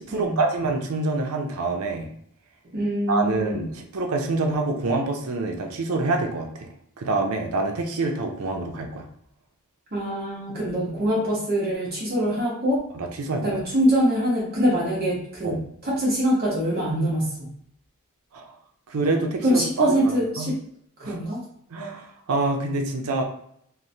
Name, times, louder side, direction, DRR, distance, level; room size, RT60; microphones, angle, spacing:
voice 1, 0.0-2.1 3.1-9.0 13.0-13.5 15.4-15.6 18.3-18.5 18.9-19.9 20.4-20.5 21.0-21.2 21.7-23.2, right 3 dB, 75° right, 3 dB, 0.5 m, -26 dB
voice 2, 2.7-3.6 9.9-12.8 13.4-17.5 19.4-20.6 21.0-21.4, equal, 45° right, -6 dB, 0.8 m, -24 dB
3.0 x 2.0 x 2.6 m, 0.69 s
head